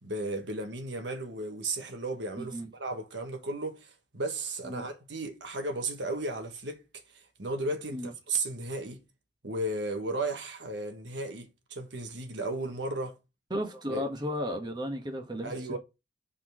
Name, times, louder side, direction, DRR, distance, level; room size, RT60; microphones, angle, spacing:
voice 1, 0.0-6.8 7.4-9.0 9.4-13.2 13.9-14.0 15.4-15.8, right 2 dB, 85° right, 1.4 m, -34 dB
voice 2, 2.4-2.7 4.6-4.9 7.9-8.1 13.5-15.5, equal, 25° right, 1.2 m, -34 dB
5.6 x 4.2 x 6.2 m
head